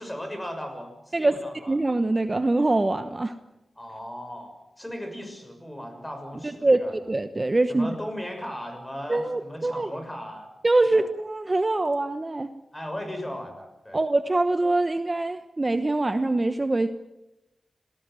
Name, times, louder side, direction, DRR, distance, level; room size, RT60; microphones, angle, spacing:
voice 1, 0.0-1.8 3.8-6.9 7.7-10.5 10.8-11.1 12.7-14.0, equal, 15° left, 6 dB, 6.5 m, -37 dB
voice 2, 1.7-3.3 6.6-7.9 9.1-9.9 10.6-12.5 13.9-16.9, right 2 dB, 30° right, 9 dB, 1.0 m, -24 dB
26.5 x 18.5 x 7.7 m, 0.95 s
wide cardioid pair, 80°, 0 cm